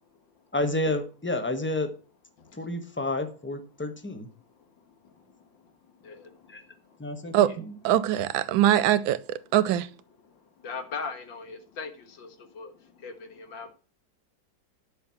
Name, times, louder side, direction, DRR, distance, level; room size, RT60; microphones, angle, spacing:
voice 1, 0.5-1.9 2.6-4.3 6.5-6.6 7.0-7.8, left 2 dB, 10° left, 0.9 m, -30 dB
voice 2, 4.5-7.6 10.2-13.7, left 4 dB, 70° left, 2.3 m, -42 dB
voice 3, 7.3-9.9, right 12 dB, 85° right, 1.4 m, -23 dB
10.5 x 5.7 x 5.9 m
omnidirectional pair, 2.1 m